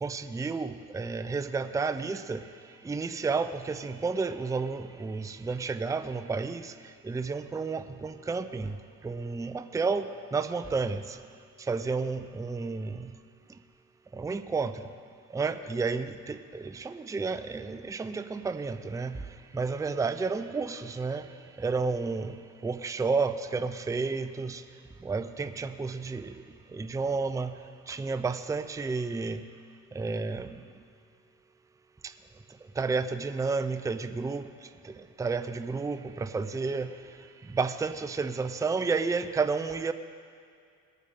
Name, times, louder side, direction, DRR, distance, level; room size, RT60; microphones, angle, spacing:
voice 1, 0.0-2.4 2.8-6.7 7.0-8.8 9.0-11.2 11.7-13.1 14.1-14.8 15.3-19.2 19.5-21.3 21.6-22.3 22.6-24.6 25.0-26.3 26.7-27.5 27.9-29.4 29.9-30.5 32.8-34.5 34.8-36.9 37.5-39.9, right 4 dB, 10° right, 10 dB, 0.4 m, -31 dB
20.0 x 9.2 x 3.7 m, 2.3 s
cardioid pair, 90°, 30 cm